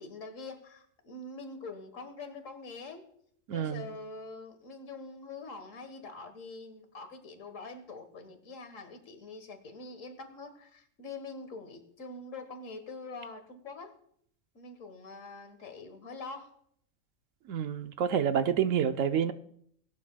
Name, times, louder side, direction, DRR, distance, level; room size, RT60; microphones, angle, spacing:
voice 1, 0.0-3.1 3.5-13.9 14.6-16.5, left 3 dB, 75° left, 1.8 m, -44 dB
voice 2, 3.5-3.9 17.5-19.3, right 8 dB, 80° right, 1.0 m, -28 dB
18.0 x 12.0 x 2.2 m
omnidirectional pair, 1.3 m